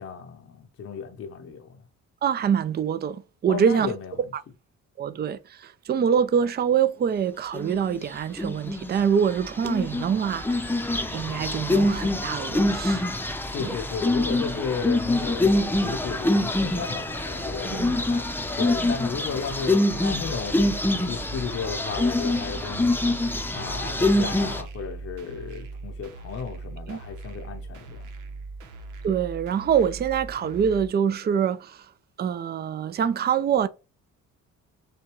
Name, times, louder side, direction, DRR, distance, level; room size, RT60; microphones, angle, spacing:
voice 1, 0.0-1.8 3.5-4.3 13.4-20.8 21.1-22.9 23.5-28.1, left 6 dB, 50° left, 0.8 m, -34 dB
voice 2, 2.2-3.9 4.3-4.4 5.0-10.8 11.1-13.0 13.6-13.7 17.7-17.9 18.8-18.9 26.9-27.0 29.0-31.9 32.2-33.7, right 7 dB, 35° right, 0.5 m, -25 dB
sound 1, 7.5-8.0 8.4-8.9 9.4-24.6, left 1 dB, 5° left, 0.7 m, -25 dB
sound 2, 19.9-30.9, right 3 dB, 90° right, 1.0 m, -40 dB
6.7 x 2.3 x 3.0 m
cardioid pair, 90°, 30 cm